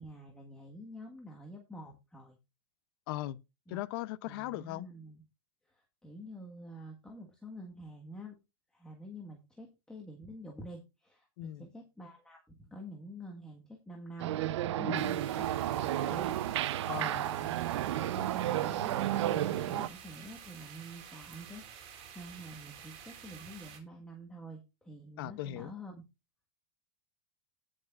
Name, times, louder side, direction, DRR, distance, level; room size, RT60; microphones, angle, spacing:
voice 1, 0.0-2.4 3.7-3.9 4.2-5.2 5.7-8.4 8.7-26.0, equal, 5° left, 1.5 m, -48 dB
voice 2, 3.1-3.4 3.7-4.9 11.4-11.7 14.8-15.1 16.9-17.2 25.2-25.7, left 15 dB, 50° left, 0.7 m, -38 dB
sound 1, 14.2-19.9, right 13 dB, 70° right, 0.7 m, -32 dB
sound 2, 14.9-23.8, right 8 dB, 40° right, 3.9 m, -50 dB
18.5 x 6.4 x 2.4 m
supercardioid pair, 160°, 15 cm